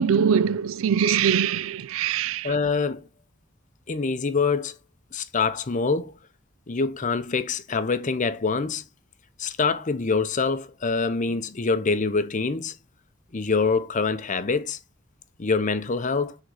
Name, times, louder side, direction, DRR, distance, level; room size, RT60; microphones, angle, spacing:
voice 1, 0.0-2.5, right 7 dB, 85° right, 0.4 m, -22 dB
voice 2, 2.4-3.1 3.9-4.7 5.1-6.1 6.7-8.8 9.4-12.8 13.3-14.8 15.4-16.4, left 4 dB, 40° left, 0.7 m, -25 dB
6.3 x 3.7 x 5.5 m
head